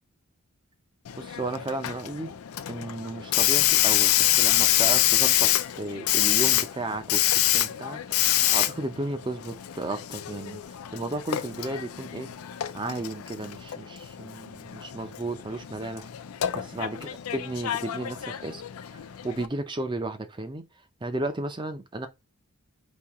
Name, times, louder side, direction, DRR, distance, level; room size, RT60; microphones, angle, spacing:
Hiss, 1.1-19.5, left 13 dB, 80° left, 0.4 m, -26 dB
voice 1, 1.2-2.3 2.7-10.6 10.9-12.3 12.7-16.1 16.5-18.6 18.9-20.6 21.0-22.1, right 2 dB, 20° right, 0.5 m, -34 dB
4.3 x 2.8 x 3.5 m
head